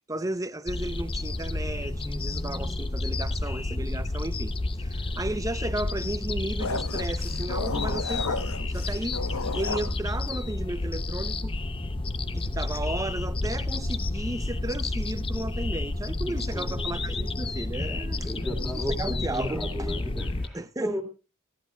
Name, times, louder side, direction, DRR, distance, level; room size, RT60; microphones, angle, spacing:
voice 1, 0.1-4.5 4.8-9.2 9.5-11.6 12.3-18.7 19.0-19.9 20.5-21.0, right 2 dB, 15° right, 0.7 m, -34 dB
sound 1, 0.7-20.5, left 2 dB, 25° left, 0.7 m, -30 dB
sound 2, 6.6-9.9, left 4 dB, 85° left, 1.1 m, -33 dB
voice 2, 16.2-16.9 18.2-21.0, equal, ahead, 2.4 m, -35 dB
26.0 x 10.5 x 2.3 m
head